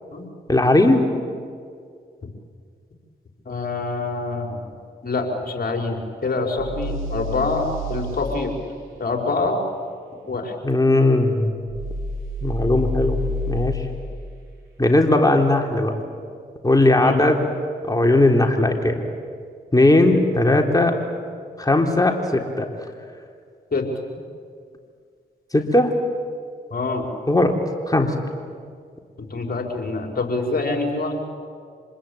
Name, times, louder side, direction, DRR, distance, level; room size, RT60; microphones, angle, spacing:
voice 1, 0.5-1.1 10.6-11.6 12.4-13.2 13.5-13.9 14.8-15.9 16.6-17.5 17.9-19.0 19.7-21.0 21.6-22.7 25.5-25.9 27.3-27.6 27.9-28.1, left 2 dB, 20° left, 2 dB, 3.9 m, -18 dB
voice 2, 3.5-4.6 5.0-8.5 9.0-9.6 10.3-10.5 16.9-17.2 23.7-23.8 26.7-27.1 29.3-31.2, left 3 dB, 50° left, 2 dB, 5.3 m, -25 dB
sound 1, 6.6-8.2 11.7-13.8, left 1 dB, 90° right, 4.1 m, -28 dB
26.5 x 20.5 x 8.8 m, 2.1 s
supercardioid pair, 40°, 20 cm